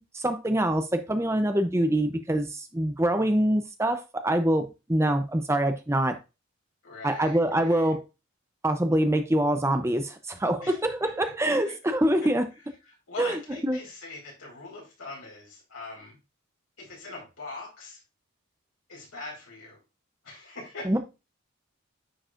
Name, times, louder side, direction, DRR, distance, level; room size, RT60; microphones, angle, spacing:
voice 1, 0.0-6.2 7.0-8.0 8.6-12.4 13.2-13.8 20.9-21.0, right 1 dB, 15° right, 0.6 m, -25 dB
voice 2, 6.8-7.9 10.6-11.3 11.6-11.7 12.2-12.3 12.8-16.2 16.8-18.0 18.9-19.8 20.2-21.0, left 3 dB, 85° left, 4.4 m, -42 dB
10.0 x 4.7 x 2.5 m
head